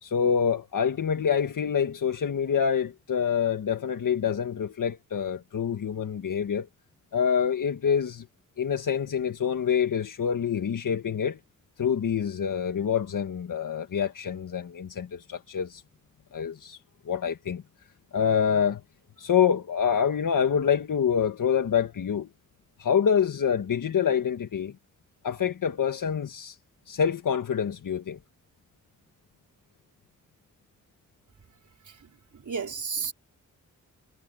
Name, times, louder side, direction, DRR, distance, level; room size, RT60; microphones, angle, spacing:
voice 1, 0.0-6.7 7.1-8.3 8.6-11.4 11.8-15.8 16.3-16.8 17.0-17.6 18.1-18.8 19.2-22.3 22.8-24.7 25.2-26.6 26.9-28.2, left 7 dB, 75° left, 1.7 m, -26 dB
voice 2, 31.9-33.1, right 5 dB, 65° right, 4.8 m, -34 dB
cardioid pair, 60°, 32 cm